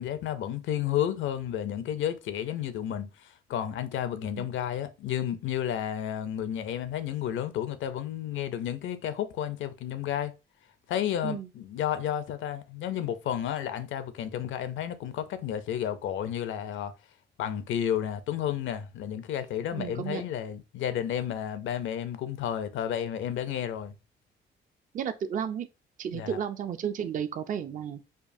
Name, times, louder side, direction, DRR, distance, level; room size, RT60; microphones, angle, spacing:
voice 1, 0.0-10.3 10.9-16.9 17.4-24.0 26.1-26.4, left 10 dB, 75° left, 0.5 m, -32 dB
voice 2, 19.7-20.2 24.9-25.7 26.0-28.0, right 8 dB, 40° right, 0.4 m, -33 dB
5.1 x 2.3 x 2.5 m
cardioid pair, 90°, 20 cm